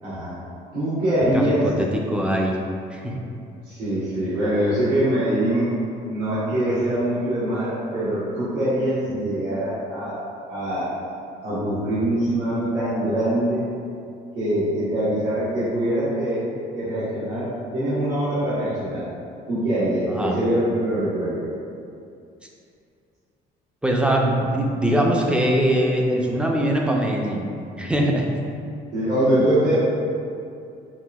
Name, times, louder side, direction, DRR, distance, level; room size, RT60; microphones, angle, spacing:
voice 1, 0.0-0.3 0.7-1.7 3.6-5.7 6.1-10.2 10.5-10.9 11.4-13.6 14.3-19.1 19.5-21.5 28.9-29.8, right 1 dB, 85° right, -14 dB, 1.4 m, -23 dB
voice 2, 1.3-2.6 2.9-3.2 9.1-9.2 20.1-20.4 23.8-27.5 27.8-28.4, right 1 dB, 5° right, 0 dB, 0.5 m, -22 dB
5.8 x 2.5 x 2.3 m, 2.5 s
cardioid pair, 110°, 17 cm